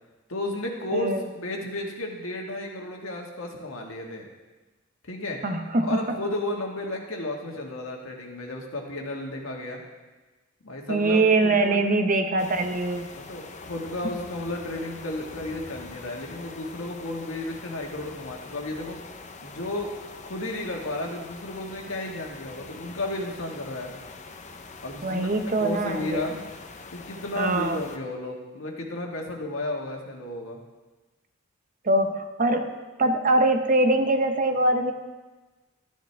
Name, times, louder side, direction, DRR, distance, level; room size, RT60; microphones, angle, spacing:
voice 1, 0.3-4.3 5.0-5.4 5.8-9.8 10.6-11.8 13.1-19.0 19.4-19.9 20.2-23.9 24.8-25.3 25.6-26.4 26.9-30.6, left 2 dB, 90° left, 1 dB, 1.7 m, -33 dB
voice 2, 0.9-1.2 5.4-6.2 10.9-13.1 25.0-26.2 27.4-27.8 31.8-32.7 33.0-34.9, right 2 dB, 40° right, 7 dB, 0.8 m, -23 dB
sound 1, 12.4-28.0, left 3 dB, 35° left, 0.7 m, -44 dB
13.0 x 10.0 x 3.4 m, 1.2 s
head